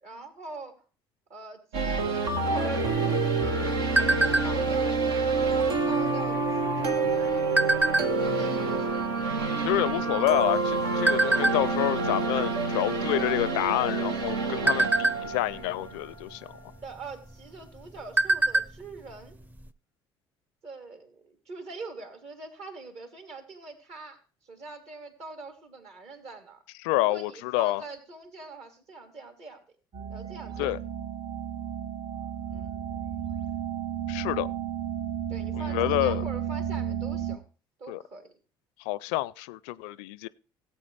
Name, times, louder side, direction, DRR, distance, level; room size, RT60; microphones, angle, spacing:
voice 1, 0.0-0.8 1.3-9.0 10.1-10.4 16.8-19.4 20.6-26.6 27.0-29.6 30.1-30.8 32.5-32.7 35.3-37.4 37.8-38.3, right 3 dB, 55° right, 3.0 m, -44 dB
sound 1, 1.7-16.6, right 3 dB, 80° right, 1.3 m, -27 dB
sound 2, 2.8-4.8 5.2-5.5 5.8-6.2 6.9-8.4 9.0-9.1 9.3-10.6 11.1-11.6 12.1-12.3 12.6-12.8 13.3-13.8 14.3-15.7 16.7-16.9 17.3-17.4 17.8-18.8 19.1-19.2 19.6-19.7, right 2 dB, 15° right, 0.7 m, -25 dB
voice 2, 9.6-16.5 26.8-27.8 30.6-30.8 34.1-34.5 35.5-36.2 37.9-38.0 38.9-40.3, left 17 dB, 70° left, 0.4 m, -28 dB
sound 3, 29.9-37.4, right 9 dB, 40° right, 1.0 m, -33 dB
16.5 x 8.4 x 3.3 m
hypercardioid pair, 55°, 13 cm